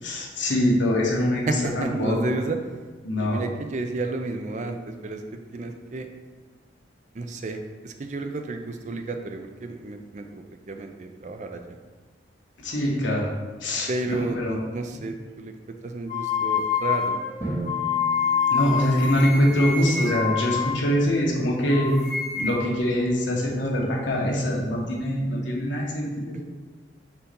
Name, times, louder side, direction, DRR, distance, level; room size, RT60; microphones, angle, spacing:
voice 1, 0.0-2.2 3.0-3.4 12.6-13.3 13.6-14.6 18.5-21.9 22.3-26.4, equal, 80° left, -3 dB, 1.3 m, -24 dB
voice 2, 1.5-2.6 3.2-5.2 5.5-6.1 7.1-11.8 13.9-17.2, right 2 dB, 40° right, 5 dB, 0.4 m, -32 dB
sound 1, 16.1-21.4 21.7-22.8, left 7 dB, 50° left, 1.1 m, -27 dB
Drum, 17.4-19.3, right 1 dB, 15° right, 1.9 m, -35 dB
4.5 x 4.2 x 5.2 m, 1.4 s
head